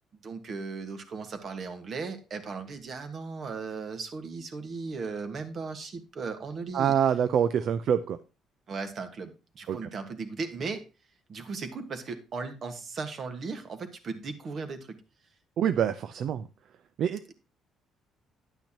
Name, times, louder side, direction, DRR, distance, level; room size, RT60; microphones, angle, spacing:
voice 1, 0.2-6.9 8.7-10.9 11.3-15.0, right 4 dB, 45° right, 8 dB, 1.5 m, -37 dB
voice 2, 6.7-8.2 9.7-9.9 15.6-16.4 17.0-17.2, right 8 dB, 60° right, 12 dB, 0.5 m, -25 dB
10.5 x 9.0 x 2.9 m, 0.32 s
cardioid pair, 130°, 0 cm